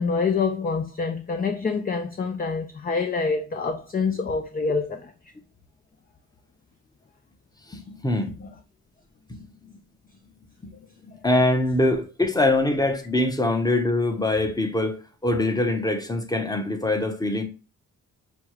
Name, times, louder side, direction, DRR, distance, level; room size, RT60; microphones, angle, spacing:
voice 1, 0.0-5.1, left 4 dB, 25° left, 0.5 m, -26 dB
voice 2, 7.7-8.5 9.3-9.7 11.0-17.4, left 2 dB, 10° left, 0.9 m, -24 dB
6.2 x 2.3 x 3.0 m
wide cardioid pair, 115°, 33 cm